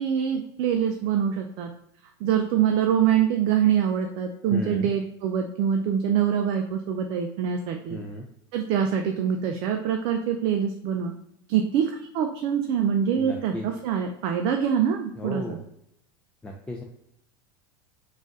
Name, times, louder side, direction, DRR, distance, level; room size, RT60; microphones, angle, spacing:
voice 1, 0.0-1.7 2.2-8.0 8.5-11.1 11.5-15.6, right 8 dB, 55° right, 4 dB, 0.4 m, -24 dB
voice 2, 4.5-4.9 7.9-8.3 13.1-13.7 15.2-15.6 16.4-16.8, left 1 dB, 10° left, 0 dB, 0.5 m, -34 dB
3.8 x 2.4 x 3.8 m, 0.75 s
hypercardioid pair, 110°, 12 cm